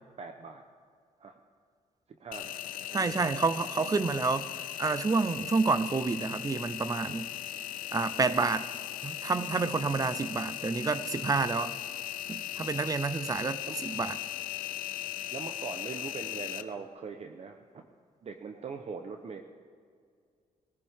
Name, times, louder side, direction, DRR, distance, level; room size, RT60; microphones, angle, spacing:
voice 1, 0.2-0.6 1.2-1.4 2.1-2.6 2.9-3.6 13.7-13.8 15.3-17.9 18.2-19.4, right 5 dB, 50° right, 5 dB, 0.9 m, -42 dB
Engine, 2.3-16.6, left 13 dB, 85° left, 0.6 m, -38 dB
voice 2, 2.9-4.5 4.8-7.3 7.9-8.7 9.0-11.8 12.3-14.2, right 4 dB, 25° right, 14 dB, 0.7 m, -29 dB
19.5 x 14.5 x 3.7 m, 2.1 s
cardioid pair, 90°, 14 cm